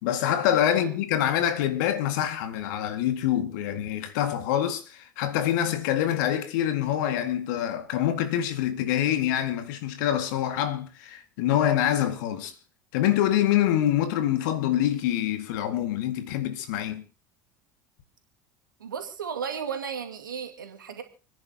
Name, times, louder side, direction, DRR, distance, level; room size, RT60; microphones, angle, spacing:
voice 1, 0.0-12.5 12.9-17.0, left 11 dB, 70° left, 2.1 m, -25 dB
voice 2, 18.8-21.0, right 7 dB, 90° right, 2.2 m, -34 dB
29.5 x 10.5 x 2.9 m
hypercardioid pair, 75°, 10 cm